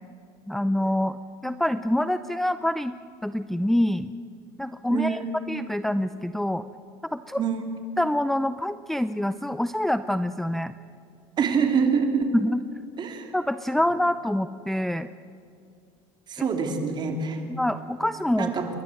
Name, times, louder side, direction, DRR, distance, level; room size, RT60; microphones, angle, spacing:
voice 1, 0.5-1.2 1.4-2.9 3.2-4.1 4.6-5.2 5.5-6.7 7.1-7.4 8.0-10.7 12.3-12.6 13.3-15.1 16.4-16.5 17.5-18.5, left 1 dB, ahead, 11 dB, 0.5 m, -26 dB
voice 2, 11.4-12.3 13.0-13.3 16.3-17.4 18.4-18.7, right 6 dB, 35° right, 4 dB, 3.2 m, -25 dB
29.5 x 12.0 x 7.8 m, 2.4 s
supercardioid pair, 115°, 12 cm